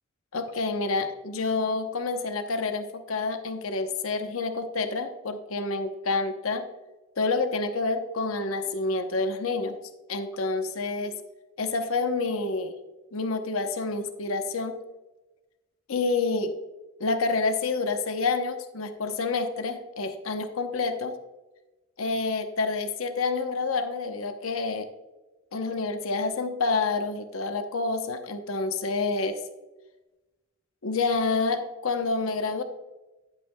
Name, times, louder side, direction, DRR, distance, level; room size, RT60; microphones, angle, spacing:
voice 1, 0.3-6.7 7.2-9.8 10.1-11.1 11.6-12.7 13.1-14.8 15.9-16.5 17.0-21.2 22.0-24.9 25.5-29.4 30.8-32.6, left 3 dB, 85° left, 7 dB, 0.8 m, -28 dB
10.5 x 8.3 x 2.2 m, 1.1 s
head